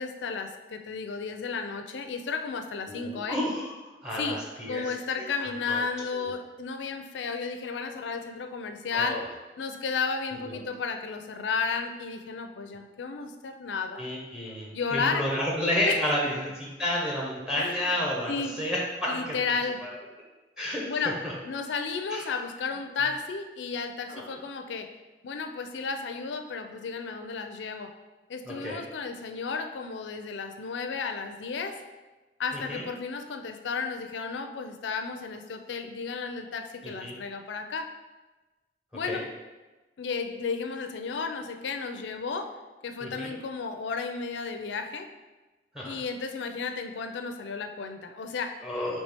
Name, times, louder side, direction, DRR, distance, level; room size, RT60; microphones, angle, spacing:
voice 1, 0.0-3.4 4.2-4.4 4.7-9.2 9.6-14.0 14.7-15.2 15.8-16.0 17.6-17.9 18.3-18.5 19.1-19.8 20.9-21.2 21.4-24.9 25.2-27.9 28.3-31.8 32.4-37.9 38.9-39.3 40.0-42.5 42.8-45.1 45.8-48.5, left 5 dB, 75° left, 6 dB, 0.4 m, -33 dB
voice 2, 2.9-3.7 4.0-4.9 5.2-5.9 6.1-6.3 8.9-9.2 10.4-10.6 14.0-19.5 19.8-19.9 20.6-21.3 22.1-22.2 24.1-24.4 28.5-28.8 32.5-32.8 36.8-37.2 39.1-39.2 43.0-43.3 45.7-46.0 48.6-49.0, left 1 dB, 5° right, -4 dB, 0.7 m, -31 dB
4.2 x 3.1 x 3.4 m, 1.2 s
head